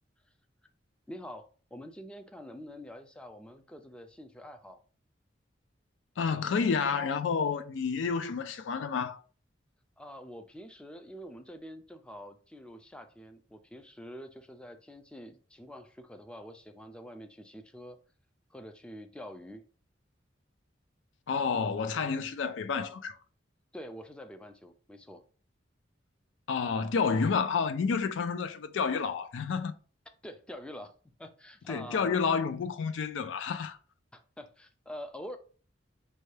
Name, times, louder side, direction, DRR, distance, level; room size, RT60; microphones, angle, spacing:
voice 1, 1.1-4.8 10.0-18.0 18.5-19.6 23.7-25.2 30.2-30.9 31.2-32.1 34.1-35.4, equal, 5° left, 0.3 m, -46 dB
voice 2, 6.2-9.2 21.3-23.2 26.5-29.7 31.7-33.8, left 5 dB, 85° left, 0.4 m, -30 dB
5.3 x 2.2 x 3.2 m
head